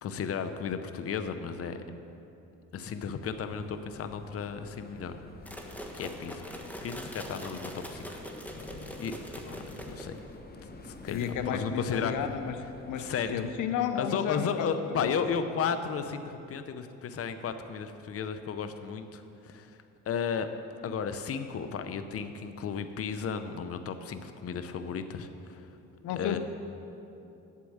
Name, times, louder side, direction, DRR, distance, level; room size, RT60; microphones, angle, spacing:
voice 1, 0.0-1.8 2.7-5.2 5.9-8.1 9.0-9.1 9.4-10.1 10.8-12.1 13.0-13.5 14.0-19.8 20.1-20.5 20.8-25.7 26.2-26.4, left 6 dB, 50° left, 9 dB, 0.7 m, -34 dB
sound 1, 3.2-13.4, left 2 dB, 30° left, 1.1 m, -48 dB
sound 2, 5.5-10.3, equal, 5° left, 1.3 m, -43 dB
voice 2, 11.1-12.5 12.9-14.7 15.0-15.1 26.0-26.4, left 8 dB, 85° left, 8 dB, 0.7 m, -32 dB
8.3 x 7.6 x 8.6 m, 2.9 s
cardioid pair, 90°, 30 cm